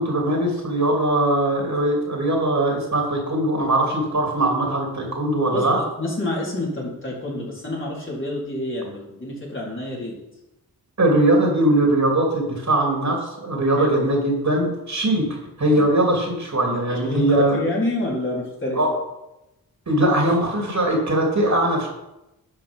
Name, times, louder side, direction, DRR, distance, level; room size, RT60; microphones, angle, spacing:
voice 1, 0.0-5.8 11.0-15.3 15.6-17.6 18.7-18.9 19.9-21.9, right 1 dB, 45° right, -1 dB, 3.2 m, -20 dB
voice 2, 5.5-10.2 13.8-13.9 15.6-15.9 16.9-18.8, left 1 dB, 30° left, -5 dB, 4.2 m, -28 dB
11.0 x 5.5 x 5.4 m, 0.91 s
cardioid pair, 70°, 37 cm